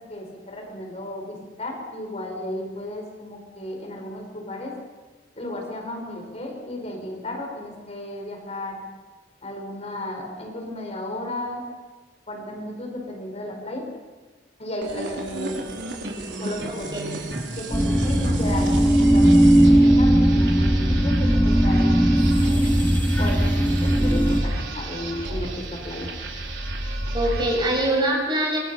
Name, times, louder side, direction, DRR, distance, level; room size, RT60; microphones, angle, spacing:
voice 1, 0.0-4.7 5.4-8.8 9.4-11.6 12.3-13.9 14.6-15.7 16.4-16.9 17.3-22.7 23.2-26.1, left 1 dB, 35° left, 1 dB, 5.1 m, -34 dB
sound 1, 14.8-28.0, right 1 dB, 80° right, 4.2 m, -31 dB
voice 2, 16.7-17.2 27.1-28.6, right 1 dB, 25° right, 0 dB, 6.6 m, -24 dB
sound 2, 17.7-24.4, right 1 dB, 10° left, 3.0 m, -18 dB
26.5 x 25.5 x 5.7 m, 1.3 s
head